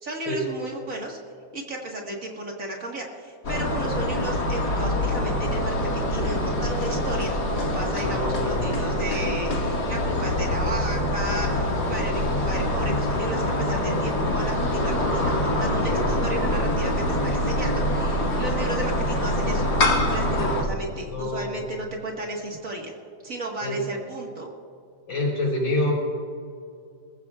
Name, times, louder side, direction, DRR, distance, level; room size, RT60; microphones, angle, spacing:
voice 1, 0.0-1.2 1.5-22.9 23.2-24.5, right 1 dB, 45° right, -1 dB, 2.0 m, -34 dB
sound 1, 3.4-20.6, left 1 dB, 55° left, 2.5 m, -25 dB
voice 2, 8.0-8.6 15.9-16.1 20.4-20.6 21.1-21.6 23.6-23.8 25.1-25.9, left 1 dB, 80° left, -5 dB, 5.3 m, -27 dB
27.0 x 15.0 x 2.4 m, 2.4 s
omnidirectional pair, 2.0 m